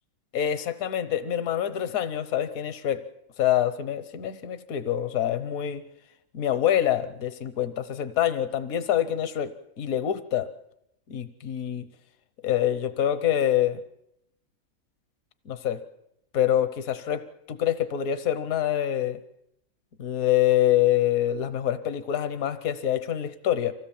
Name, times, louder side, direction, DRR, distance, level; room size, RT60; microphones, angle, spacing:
voice 1, 0.3-3.0 3.4-5.8 6.3-10.5 11.1-11.9 12.4-13.8 15.5-15.8 16.3-17.2 17.5-19.2 20.0-23.7, left 11 dB, 80° left, 12 dB, 1.4 m, -26 dB
25.0 x 16.5 x 7.2 m, 0.80 s
omnidirectional pair, 1.5 m